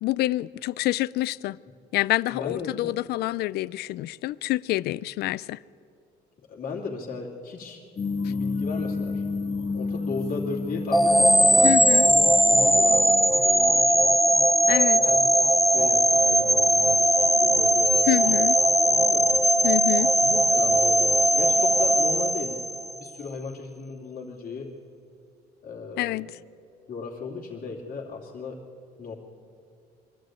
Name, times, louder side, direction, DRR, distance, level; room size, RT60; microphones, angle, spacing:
voice 1, 0.0-1.6 1.9-5.6 11.6-12.1 14.7-15.0 18.1-18.6 19.6-20.1 26.0-26.3, left 17 dB, 75° left, 0.4 m, -27 dB
voice 2, 2.3-2.9 6.5-7.8 8.2-9.2 9.7-14.1 14.9-15.5 15.7-17.1 17.4-18.5 18.7-19.3 20.2-22.6 22.9-24.7 25.6-26.2 26.9-28.6 29.0-29.1, left 4 dB, 55° left, 2.7 m, -36 dB
sound 1, 8.0-13.3, left 4 dB, 35° left, 1.9 m, -31 dB
sound 2, 10.9-23.1, equal, ahead, 0.4 m, -19 dB
23.0 x 13.5 x 9.2 m
cardioid pair, 110°, 17 cm